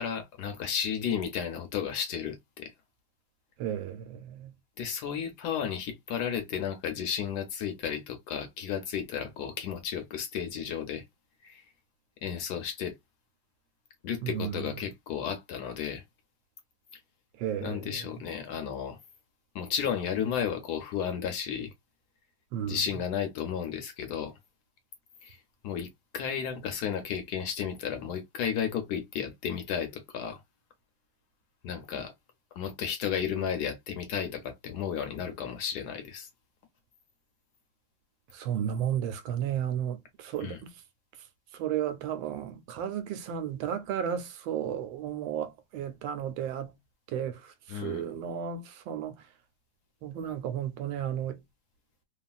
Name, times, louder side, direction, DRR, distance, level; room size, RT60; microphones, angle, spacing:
voice 1, 0.0-2.7 4.8-11.0 11.4-11.6 12.2-13.0 14.0-16.0 17.6-19.0 19.5-21.7 22.6-24.3 25.2-25.4 25.6-30.4 31.6-32.1 32.6-36.3 40.4-40.6 47.7-48.0, left 8 dB, 70° left, 1.0 m, -33 dB
voice 2, 3.6-4.5 14.2-14.7 17.4-18.0 22.5-22.8 38.3-40.7 41.5-46.7 47.1-49.2 50.0-51.4, right 9 dB, 85° right, 1.3 m, -33 dB
3.1 x 2.3 x 2.3 m
omnidirectional pair, 2.1 m